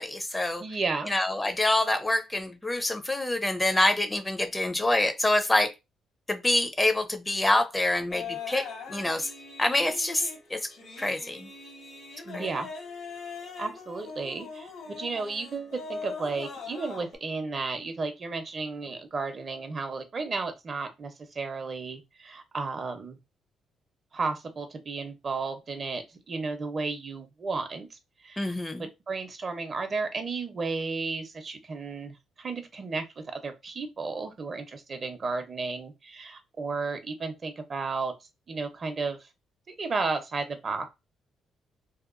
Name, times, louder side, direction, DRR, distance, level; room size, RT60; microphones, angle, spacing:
voice 1, 0.0-0.6 1.1-5.7 6.3-9.3 9.6-10.7 11.0-11.5 12.3-12.5 28.4-28.9, left 1 dB, 15° left, 0.5 m, -26 dB
voice 2, 0.6-1.1 12.2-12.7 13.6-23.2 24.1-38.1 38.5-39.3 39.7-40.9, right 4 dB, 40° right, 0.6 m, -33 dB
sound 1, 8.1-17.2, left 5 dB, 85° left, 1.3 m, -41 dB
2.7 x 2.2 x 2.5 m
cardioid pair, 90°, 0 cm